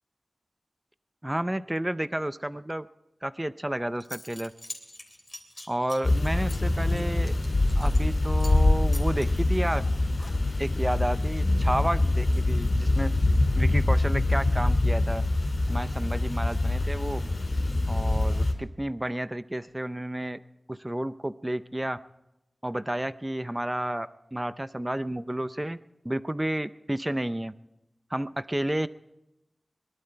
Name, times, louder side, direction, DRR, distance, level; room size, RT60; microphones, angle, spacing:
voice 1, 1.2-2.9 3.2-4.5 5.7-7.3 7.8-9.8 10.6-13.1 13.6-15.2 15.7-17.2 17.9-20.4 20.7-22.0 22.6-25.8 26.0-27.5 28.1-28.9, right 1 dB, 15° right, 14 dB, 0.6 m, -31 dB
Zipper (clothing) / Coin (dropping), 3.6-3.7 4.0-8.1 8.4-8.6 8.9-10.7, left 1 dB, 20° left, 3.0 m, -44 dB
sound 1, 6.0-18.5, left 2 dB, 70° left, 3.8 m, -24 dB
22.0 x 12.0 x 4.6 m, 0.92 s
wide cardioid pair, 70°, 0 cm